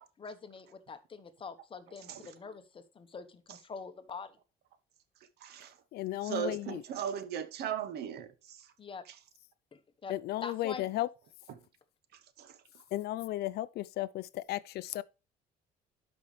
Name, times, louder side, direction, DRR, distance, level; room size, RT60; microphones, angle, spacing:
voice 1, 0.2-4.4 8.8-9.1 9.7-10.1 10.4-10.9, left 5 dB, 30° left, 1.1 m, -45 dB
voice 2, 5.4-5.8 6.2-8.7 12.1-12.8, right 9 dB, 75° right, 1.1 m, -38 dB
voice 3, 5.9-6.8 10.1-11.1 12.9-15.0, left 15 dB, 70° left, 0.5 m, -34 dB
12.0 x 5.4 x 3.2 m
cardioid pair, 110°, 17 cm